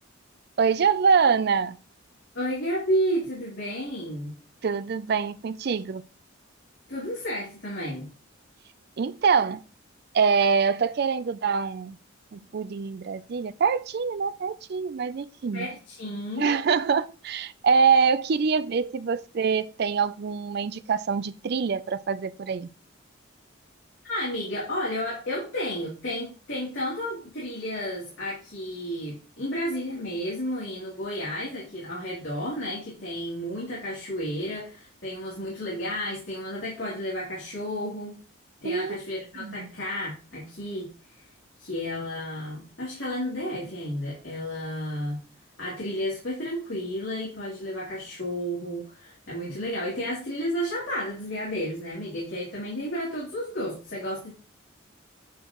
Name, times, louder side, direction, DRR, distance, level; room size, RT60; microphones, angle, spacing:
voice 1, 0.6-1.8 4.6-6.0 9.0-9.6 10.1-12.0 12.3-15.7 16.4-22.7 38.6-39.0 39.4-39.7, right 5 dB, 50° right, 0.4 m, -24 dB
voice 2, 2.3-4.4 6.9-8.1 15.5-16.6 24.1-38.1 38.6-40.9 41.2-41.3 41.6-45.2 45.6-54.3, equal, 60° left, 3.0 m, -32 dB
9.1 x 4.6 x 3.0 m
head